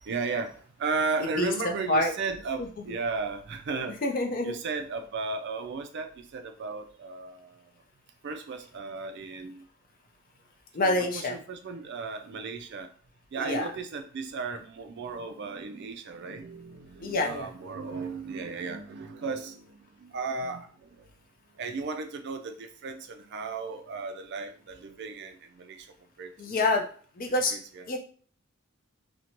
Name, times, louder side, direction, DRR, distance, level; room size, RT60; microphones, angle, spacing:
voice 1, 0.0-4.0 4.4-7.6 8.2-9.6 10.8-12.9 13.3-21.1 21.6-25.9 26.2-26.5 27.5-27.8, right 4 dB, 50° right, 6 dB, 0.4 m, -35 dB
voice 2, 1.2-1.5 1.9-2.1 4.0-4.5 10.7-11.4 13.3-13.7 17.0-17.5 26.4-26.9 27.2-27.5 27.9-28.0, left 2 dB, 40° left, 3 dB, 0.5 m, -27 dB
2.6 x 2.1 x 2.9 m, 0.43 s
head